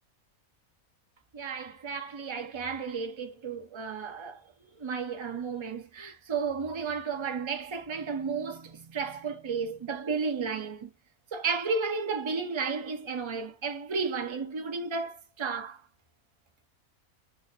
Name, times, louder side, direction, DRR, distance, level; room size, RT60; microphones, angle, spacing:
voice 1, 1.3-4.4 4.8-10.9 11.3-15.8, right 5 dB, 35° right, 0.4 m, -33 dB
4.1 x 2.7 x 2.5 m
omnidirectional pair, 1.5 m